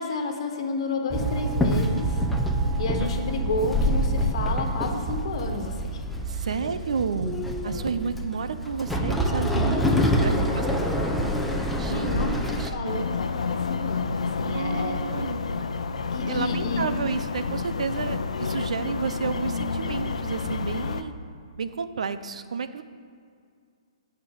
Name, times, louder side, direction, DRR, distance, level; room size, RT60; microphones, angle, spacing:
voice 1, 0.0-2.2 2.6-6.0 6.3-6.5 7.6-8.1 10.2-11.0 11.8-12.4 12.7-15.0 16.1-16.8, left 3 dB, 55° left, 4 dB, 1.4 m, -31 dB
Walk footsteps / Chatter / Hiss, 1.1-12.7, equal, 5° left, 0.7 m, -26 dB
voice 2, 6.3-7.4 7.6-10.7 11.8-12.3 12.6-13.0 14.5-15.4 16.3-21.1 21.6-22.8, right 5 dB, 80° right, 11 dB, 0.6 m, -31 dB
sound 1, 12.8-21.0, left 4 dB, 80° left, 0.7 m, -29 dB
11.5 x 4.5 x 6.8 m, 2.2 s
hypercardioid pair, 150°, 3 cm